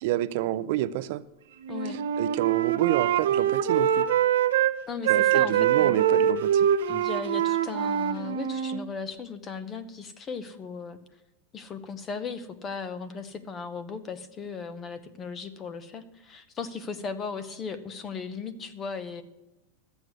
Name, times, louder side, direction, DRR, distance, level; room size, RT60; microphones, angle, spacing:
voice 1, 0.0-1.2 2.2-4.1 5.1-6.7, right 14 dB, 50° right, 15 dB, 0.4 m, -28 dB
Wind instrument woodwind instrument, 1.7-4.7 5.0-8.8, right 10 dB, 90° right, 0.7 m, -24 dB
voice 2, 4.9-6.0 6.9-11.0 11.5-19.2, left 5 dB, 20° left, 13 dB, 0.8 m, -37 dB
13.0 x 8.0 x 6.2 m, 0.98 s
supercardioid pair, 170°, 0 cm